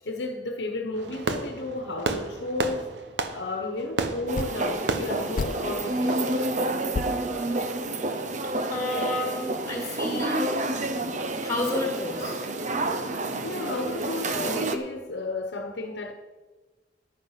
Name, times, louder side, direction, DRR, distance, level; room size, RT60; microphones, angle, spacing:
voice 1, 0.0-2.9 3.3-6.6 13.4-16.1, left 2 dB, 75° left, 1.2 m, -33 dB
Fireworks, 0.9-6.6, right 3 dB, 85° right, 1.0 m, -33 dB
sound 1, 4.3-4.8 5.3-6.0 6.4-6.5 6.9-8.1, left 3 dB, 50° left, 0.4 m, -33 dB
sound 2, 4.3-14.8, right 2 dB, 45° right, 0.8 m, -29 dB
voice 2, 8.7-10.5 11.4-12.4, left 1 dB, 20° left, 2.9 m, -30 dB
11.5 x 9.3 x 5.7 m
head